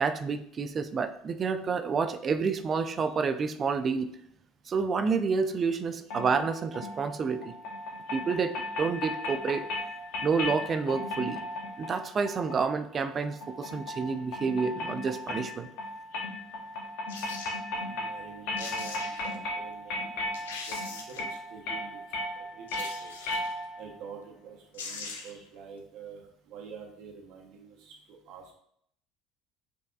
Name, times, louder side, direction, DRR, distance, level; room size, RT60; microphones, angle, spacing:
voice 1, 0.0-4.2 4.7-7.6 8.1-8.5 8.8-9.6 10.2-11.4 11.8-15.7, right 5 dB, 40° right, 10 dB, 0.3 m, -29 dB
sound 1, 6.1-24.0, left 1 dB, 70° left, 0.8 m, -36 dB
sound 2, 17.1-17.6 18.3-18.4 18.6-19.4 19.9-20.0 20.3-21.4 22.7-23.6 24.4-24.5 24.7-25.5 25.8-25.9, left 4 dB, 85° left, 0.4 m, -41 dB
voice 2, 17.8-22.0 22.4-23.1 23.8-28.5, right 6 dB, 65° right, 0 dB, 0.9 m, -47 dB
5.1 x 2.7 x 2.3 m, 0.68 s
hypercardioid pair, 65°, 0 cm